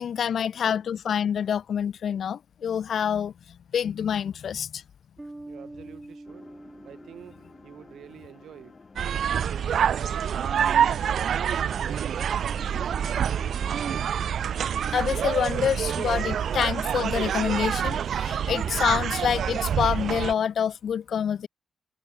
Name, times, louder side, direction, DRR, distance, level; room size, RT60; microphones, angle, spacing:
voice 1, 0.0-3.3 3.7-4.8 14.9-21.5, left 8 dB, 65° left, 0.3 m, -27 dB
Bass guitar, 5.2-8.7, right 2 dB, 10° right, 0.9 m, -46 dB
voice 2, 5.5-6.5 6.8-8.9 9.5-10.4 10.6-11.7 12.2-13.3 20.7-21.4, right 10 dB, 85° right, 1.4 m, -49 dB
sound 1, 6.2-14.1, left 4 dB, 30° left, 1.9 m, -50 dB
sound 2, 9.0-20.3, right 8 dB, 65° right, 0.4 m, -26 dB
wide cardioid pair, 150°, 0 cm